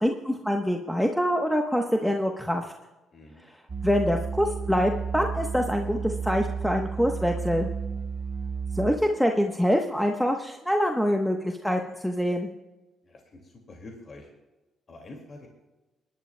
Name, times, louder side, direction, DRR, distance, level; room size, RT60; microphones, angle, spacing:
voice 1, 0.0-2.6 3.8-7.7 8.7-12.5, equal, 5° left, 2 dB, 1.0 m, -25 dB
voice 2, 3.1-3.4 13.1-14.3 14.9-15.5, left 2 dB, 40° left, 1 dB, 2.1 m, -46 dB
sound 1, 3.7-8.9, right 6 dB, 40° right, 1.3 m, -32 dB
22.5 x 11.0 x 2.2 m, 1.1 s
cardioid pair, 90°, 0 cm